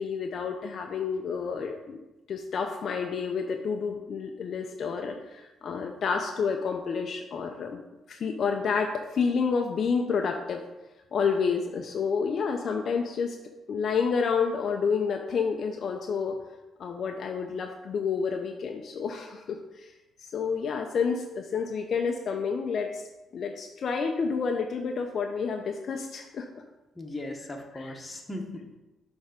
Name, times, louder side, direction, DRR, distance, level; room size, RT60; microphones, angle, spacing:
voice 1, 0.0-2.0 2.3-7.8 8.1-10.6 11.1-13.4 13.7-16.4 16.8-19.9 20.3-23.0 23.3-26.6 27.7-27.9, left 5 dB, 55° left, 3 dB, 0.5 m, -29 dB
voice 2, 26.9-28.8, left 1 dB, 20° left, 1 dB, 1.2 m, -38 dB
6.4 x 3.5 x 5.0 m, 1.0 s
cardioid pair, 90°, 0 cm